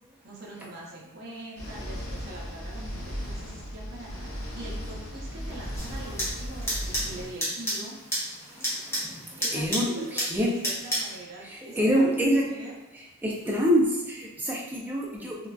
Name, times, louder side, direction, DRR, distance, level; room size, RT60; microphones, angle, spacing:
voice 1, 0.2-8.0 9.4-12.7, right 2 dB, 45° right, -4 dB, 0.7 m, -43 dB
sound 1, 1.6-7.3, equal, 70° left, 0.8 m, -36 dB
sound 2, 5.8-11.2, equal, 10° left, 0.8 m, -32 dB
voice 2, 8.6-9.0 9.5-10.6 11.4-12.4 13.2-15.5, equal, 10° right, -3 dB, 0.4 m, -26 dB
3.7 x 2.3 x 2.3 m, 1.0 s
head